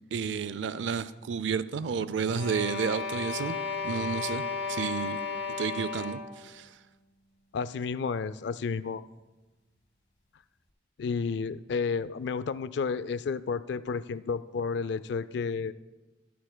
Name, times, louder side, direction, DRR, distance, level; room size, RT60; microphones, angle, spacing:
voice 1, 0.1-3.6 3.8-4.4 4.7-5.2 5.6-6.7, right 6 dB, 70° right, 15 dB, 0.4 m, -31 dB
sound 1, 2.3-6.4, left 5 dB, 85° left, 1.9 m, -34 dB
voice 2, 7.5-9.0 11.0-15.7, left 5 dB, 60° left, 16 dB, 0.3 m, -31 dB
13.5 x 13.5 x 2.2 m, 1.2 s
head